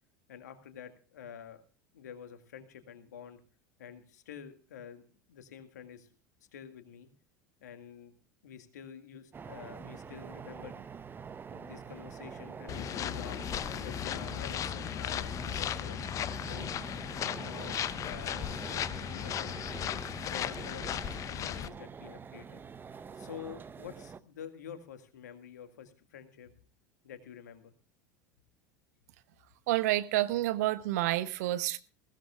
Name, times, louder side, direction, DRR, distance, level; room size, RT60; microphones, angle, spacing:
voice 1, 0.3-1.6 1.9-3.4 3.8-5.0 5.3-6.1 6.5-7.1 7.6-8.1 8.4-10.9 11.5-13.5 13.8-16.0 16.4-16.7 17.2-19.6 20.3-22.6 23.1-26.5 27.0-27.7, left 8 dB, 70° left, 2.0 m, -48 dB
sound 1, 9.3-24.2, right 6 dB, 20° right, 0.7 m, -46 dB
sound 2, 12.7-21.7, left 10 dB, 35° left, 0.7 m, -36 dB
voice 2, 29.7-31.8, right 15 dB, 60° right, 1.0 m, -29 dB
21.0 x 16.5 x 2.4 m
figure-of-eight pair, 75°, 10 cm